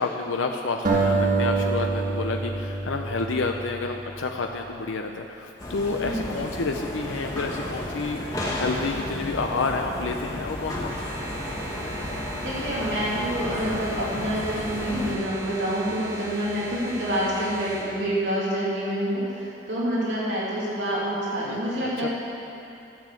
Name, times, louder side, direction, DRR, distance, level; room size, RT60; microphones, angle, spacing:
voice 1, 0.0-10.9 21.4-21.6 21.8-22.1, left 3 dB, 90° left, 3 dB, 0.6 m, -29 dB
sound 1, 0.8-4.1, right 3 dB, 45° right, 1.6 m, -25 dB
sound 2, 5.6-15.2, left 1 dB, 20° left, 1.4 m, -32 dB
sound 3, 10.8-17.8, equal, 10° right, 2.1 m, -38 dB
voice 2, 12.4-22.1, equal, 70° right, -7 dB, 2.7 m, -27 dB
12.5 x 7.0 x 6.9 m, 2.7 s
head